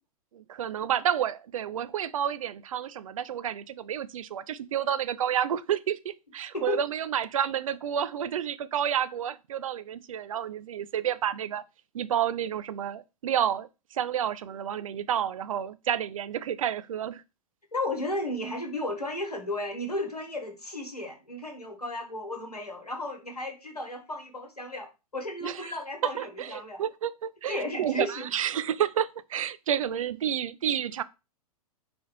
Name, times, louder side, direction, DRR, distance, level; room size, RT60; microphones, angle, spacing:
voice 1, 0.3-11.6 11.9-17.2 25.4-25.7 26.0-31.0, right 9 dB, 60° right, 0.4 m, -30 dB
voice 2, 17.7-26.8 27.5-28.3, left 1 dB, 85° left, 1.2 m, -34 dB
4.2 x 2.4 x 4.5 m
figure-of-eight pair, 100°, 20 cm